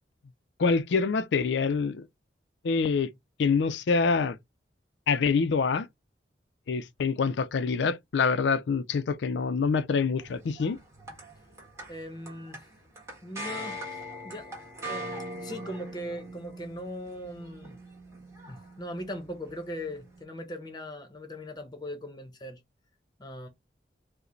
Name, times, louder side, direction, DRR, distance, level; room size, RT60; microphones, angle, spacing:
voice 1, 0.6-2.1 2.6-3.1 3.4-4.4 5.1-5.9 6.7-10.8, left 5 dB, 75° left, 0.4 m, -26 dB
sound 1, 10.2-20.2, equal, 15° right, 1.3 m, -42 dB
voice 2, 11.9-12.7 13.2-14.5 14.8-17.8 18.5-22.6 23.2-23.5, equal, 20° left, 0.8 m, -40 dB
4.7 x 2.1 x 3.1 m
head